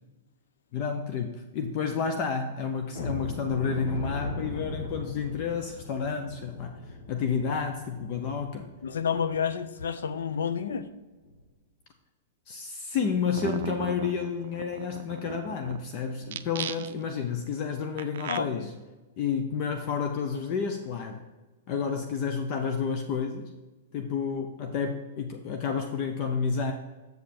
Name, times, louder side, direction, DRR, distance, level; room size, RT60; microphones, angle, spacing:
voice 1, 0.7-8.7 12.5-18.7 19.2-21.2 21.7-23.5 23.9-26.7, left 6 dB, 40° left, 5 dB, 0.7 m, -30 dB
sound 1, 2.9-9.7 10.0-10.2 10.6-10.8 11.2-11.4, left 2 dB, 60° left, 1.4 m, -39 dB
voice 2, 8.8-10.9 18.3-18.7, left 7 dB, 90° left, 12 dB, 0.6 m, -30 dB
sound 2, 13.0-13.1 13.4-15.8 16.2-17.1 18.0-18.4, right 9 dB, 70° right, 0.4 m, -36 dB
7.8 x 5.3 x 4.3 m, 1.2 s
hypercardioid pair, 145°, 0 cm